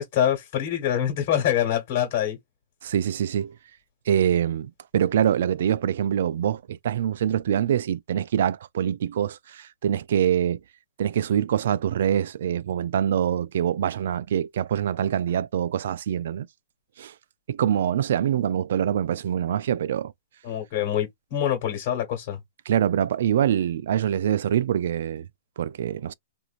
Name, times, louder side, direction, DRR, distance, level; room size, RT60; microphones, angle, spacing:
voice 1, 0.0-2.4 20.4-22.4, left 10 dB, 45° left, 1.4 m, -25 dB
voice 2, 2.8-3.5 4.1-10.6 11.0-16.5 17.0-17.1 17.5-20.1 22.7-25.3 25.6-26.1, right 9 dB, 65° right, 0.3 m, -24 dB
3.0 x 2.5 x 2.4 m
hypercardioid pair, 150°, 0 cm